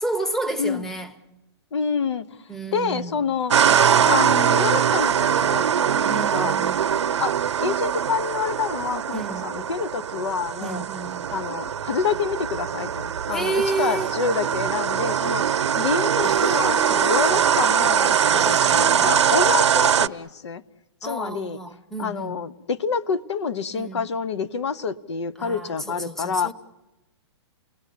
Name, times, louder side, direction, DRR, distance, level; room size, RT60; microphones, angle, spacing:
voice 1, 0.0-1.1 2.5-3.2 6.0-6.9 9.1-9.5 10.6-11.3 13.3-14.1 16.2-17.4 18.3-19.1 21.0-22.4 23.7-24.1 25.4-26.5, right 3 dB, 5° left, 1.0 m, -31 dB
voice 2, 1.7-2.3 2.7-3.5 4.1-6.6 7.2-7.3 7.6-10.8 11.3-20.6 21.0-21.6 22.0-26.5, left 5 dB, 75° left, 1.1 m, -27 dB
sound 1, 3.5-20.1, right 8 dB, 80° right, 0.8 m, -22 dB
30.0 x 19.0 x 8.6 m
hypercardioid pair, 150°, 15 cm